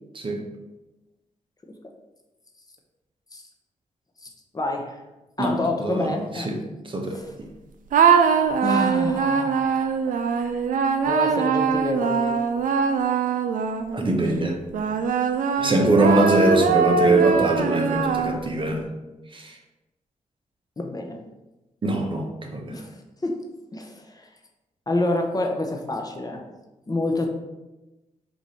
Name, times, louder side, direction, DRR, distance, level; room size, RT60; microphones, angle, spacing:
voice 1, 4.5-5.0 5.4-6.5 7.1-7.3 8.6-9.9 11.0-12.4 15.6-15.8 20.8-21.2 22.7-23.4 23.7-24.3 24.9-26.4 26.9-27.3, left 2 dB, 25° left, 2 dB, 0.7 m, -28 dB
voice 2, 5.4-6.6 6.8-7.5 13.9-14.6 15.6-18.8 19.3-19.6 21.8-22.8, right 2 dB, 35° right, 2 dB, 0.8 m, -22 dB
sound 1, 7.9-14.1 14.7-18.6, right 6 dB, 75° right, 0.4 m, -22 dB
4.8 x 2.6 x 4.1 m, 1.0 s
cardioid pair, 65°, 14 cm